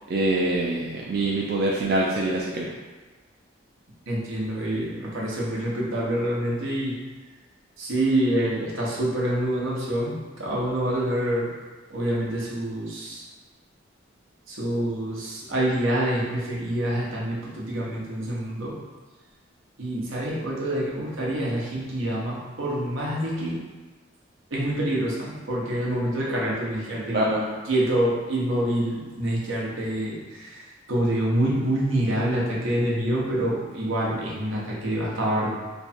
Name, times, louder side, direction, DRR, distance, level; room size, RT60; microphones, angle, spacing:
voice 1, 0.1-2.7 27.1-27.4, right 1 dB, 50° right, -3 dB, 0.4 m, -24 dB
voice 2, 4.1-7.0 7.8-11.5 11.9-13.3 14.5-18.7 19.8-23.6 24.5-27.1 27.7-35.5, right 1 dB, 85° right, -5 dB, 1.0 m, -26 dB
3.3 x 2.3 x 4.2 m, 1.3 s
head